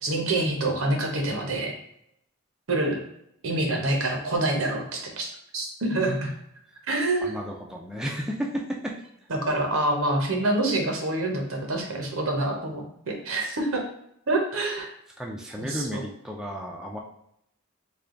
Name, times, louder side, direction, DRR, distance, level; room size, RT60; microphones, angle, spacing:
voice 1, 0.0-1.7 2.7-3.0 3.4-6.3 6.9-7.4 9.3-13.8 14.3-14.8 15.6-16.0, right 2 dB, 80° right, 1 dB, 0.9 m, -26 dB
voice 2, 7.2-9.0 15.2-17.0, equal, 5° right, -1 dB, 0.3 m, -33 dB
3.3 x 2.3 x 3.7 m, 0.74 s
head